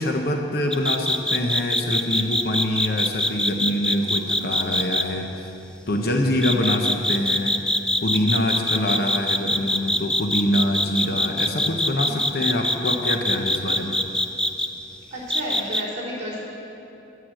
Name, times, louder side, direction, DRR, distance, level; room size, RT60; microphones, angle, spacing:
voice 1, 0.0-5.5 5.9-7.6 8.0-14.0, left 1 dB, 55° left, 2 dB, 0.8 m, -25 dB
sound 1, 0.7-5.0 6.4-14.7 15.3-15.8, left 1 dB, 5° left, 0.3 m, -23 dB
voice 2, 15.1-16.4, equal, 40° right, -7 dB, 3.7 m, -32 dB
11.0 x 8.9 x 7.7 m, 2.8 s
head